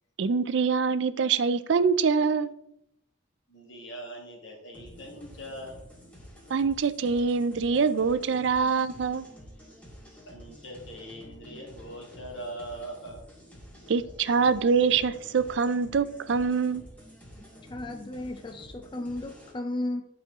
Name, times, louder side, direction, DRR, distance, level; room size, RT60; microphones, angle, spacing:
voice 1, 0.2-2.5 6.5-9.2 13.9-16.8, right 5 dB, 65° right, 0.4 m, -24 dB
voice 2, 3.5-5.9 10.3-13.3 13.8-14.3, right 1 dB, 75° left, 2.1 m, -42 dB
sound 1, 4.7-19.5, equal, 5° left, 1.7 m, -49 dB
voice 3, 17.7-20.1, left 1 dB, 25° left, 0.4 m, -34 dB
10.5 x 4.4 x 3.6 m
head